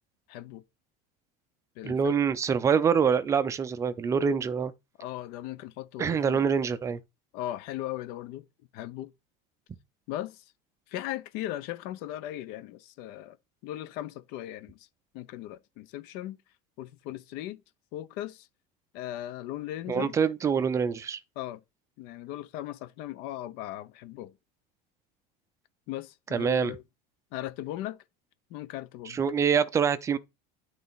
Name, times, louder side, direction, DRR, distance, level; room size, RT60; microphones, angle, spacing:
voice 1, 0.3-0.6 1.8-2.2 5.0-6.5 7.3-8.5 8.7-9.1 10.1-10.4 10.9-13.4 13.6-14.9 15.1-16.4 16.8-17.6 17.9-18.5 18.9-20.1 21.4-21.6 22.0-24.4 25.9-26.8 27.3-28.0 28.5-29.2, left 13 dB, 50° left, 0.8 m, -38 dB
voice 2, 1.8-4.7 6.0-7.0 19.9-21.2 26.3-26.7 29.1-30.2, right 6 dB, 15° right, 0.5 m, -25 dB
11.0 x 4.0 x 4.0 m
cardioid pair, 175°, 20 cm